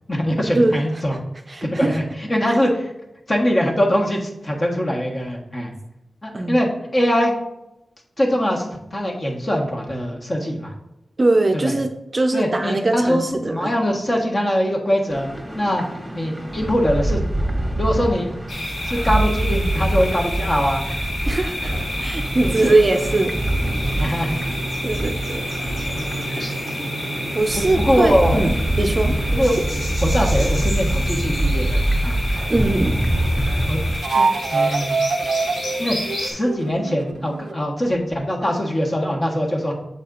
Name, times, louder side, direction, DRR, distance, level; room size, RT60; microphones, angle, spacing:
voice 1, 0.1-1.2 1.6-2.0 2.3-2.9 3.3-5.7 6.2-7.3 8.2-10.7 11.6-11.7 12.3-15.3 15.5-15.8 16.1-17.2 17.8-18.3 18.8-20.8 22.4-22.8 23.9-24.4 25.9-26.3 27.8-28.4 29.3-29.6 30.0-32.2 33.7-33.8 34.1-35.0 35.8-39.7, equal, 35° left, 0 dB, 1.4 m, -22 dB
voice 2, 1.5-2.0 2.5-2.6 6.3-6.6 11.2-13.8 21.3-21.7 22.0-23.4 24.8-25.4 27.3-29.2 32.5-33.0, right 2 dB, 35° right, 5 dB, 0.6 m, -21 dB
sound 1, 15.1-34.0, right 1 dB, 5° right, 1.5 m, -24 dB
sound 2, 18.5-36.3, left 1 dB, 65° left, 2.3 m, -30 dB
sound 3, 21.6-31.7 33.9-37.6, right 4 dB, 85° right, 0.4 m, -29 dB
6.9 x 4.1 x 3.8 m, 0.89 s
wide cardioid pair, 85°, 0 cm